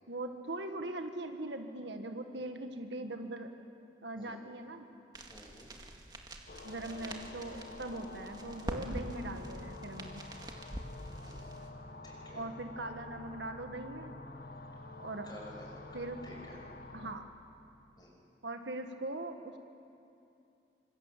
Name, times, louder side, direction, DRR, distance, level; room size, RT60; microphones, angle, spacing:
voice 1, 0.1-3.5 4.0-4.9 6.6-10.2 12.3-14.1 15.0-15.3 15.9-16.2 16.9-17.3 18.4-19.6, right 2 dB, 80° right, 5 dB, 1.8 m, -41 dB
voice 2, 4.2-4.5 5.3-5.7 11.2-11.6 12.0-12.4 15.2-16.6 18.0-18.2, equal, 25° left, -1 dB, 6.0 m, -52 dB
sound 1, 5.1-11.7, right 1 dB, 25° right, 2.0 m, -45 dB
sound 2, 6.5-17.2, left 2 dB, 55° left, 1.3 m, -49 dB
26.0 x 25.5 x 7.6 m, 2.6 s
head